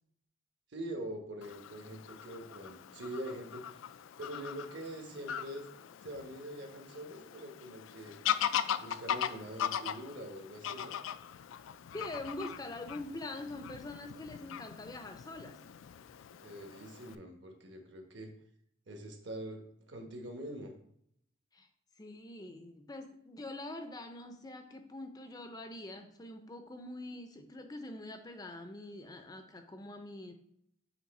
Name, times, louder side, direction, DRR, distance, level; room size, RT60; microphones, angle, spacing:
voice 1, 0.7-3.6 4.2-5.7 6.0-8.1 8.8-10.9 16.4-18.3 18.9-20.7, right 1 dB, 65° right, 3 dB, 1.2 m, -44 dB
Fowl / Bird vocalization bird call bird song, 1.4-17.1, left 9 dB, 85° left, 0.3 m, -40 dB
voice 2, 11.9-15.6 21.5-21.7 22.0-30.3, left 2 dB, 20° left, 6 dB, 0.4 m, -44 dB
7.3 x 3.2 x 4.1 m, 0.69 s
head